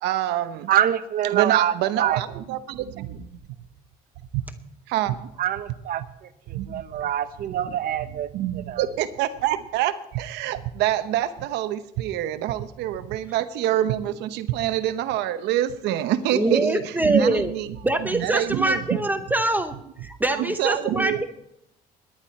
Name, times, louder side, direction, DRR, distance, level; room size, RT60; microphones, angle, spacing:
voice 1, 0.0-0.7 1.3-3.4 4.9-5.3 6.5-7.1 7.5-19.0 20.3-21.2, right 12 dB, 90° right, 12 dB, 0.9 m, -26 dB
voice 2, 0.7-2.2 5.4-6.3 6.7-8.3 8.7-8.8, right 11 dB, 60° right, 11 dB, 1.0 m, -25 dB
voice 3, 16.3-17.5 17.8-19.8 20.0-21.2, right 2 dB, 10° right, 8 dB, 0.8 m, -23 dB
18.5 x 10.5 x 4.3 m, 0.80 s
cardioid pair, 110°, 17 cm